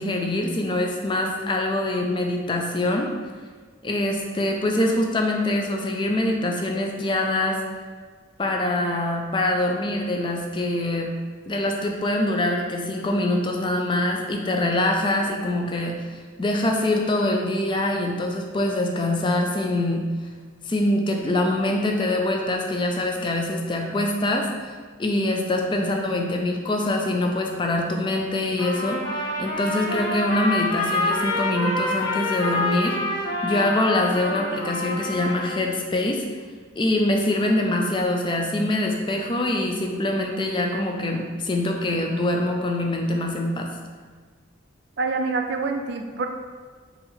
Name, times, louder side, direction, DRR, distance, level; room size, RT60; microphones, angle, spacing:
voice 1, 0.0-3.1 3.8-7.6 8.4-11.1 11.5-20.1 20.7-24.7 25.0-36.2 36.8-43.7, left 1 dB, 25° left, 2 dB, 0.4 m, -24 dB
Trumpet, 28.6-35.7, left 2 dB, 90° left, 1.0 m, -27 dB
voice 2, 45.0-46.3, right 4 dB, 55° right, 4 dB, 0.4 m, -26 dB
4.2 x 2.8 x 4.0 m, 1.5 s
head